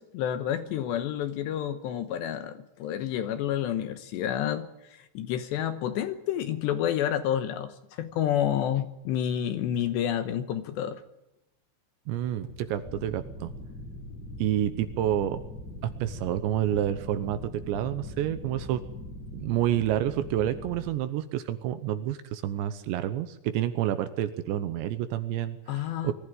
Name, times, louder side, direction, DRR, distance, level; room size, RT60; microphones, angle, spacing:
voice 1, 0.0-11.0 25.7-26.1, left 10 dB, 75° left, 10 dB, 2.8 m, -29 dB
sound 1, 12.1-14.4, right 2 dB, 35° right, 3.0 m, -51 dB
voice 2, 12.1-13.5 14.4-15.4 15.8-17.4 17.7-18.8 19.3-26.1, right 11 dB, 75° right, 11 dB, 2.9 m, -29 dB
sound 2, 12.8-20.9, left 1 dB, 40° left, 3.0 m, -41 dB
22.0 x 14.5 x 9.3 m, 0.92 s
omnidirectional pair, 5.8 m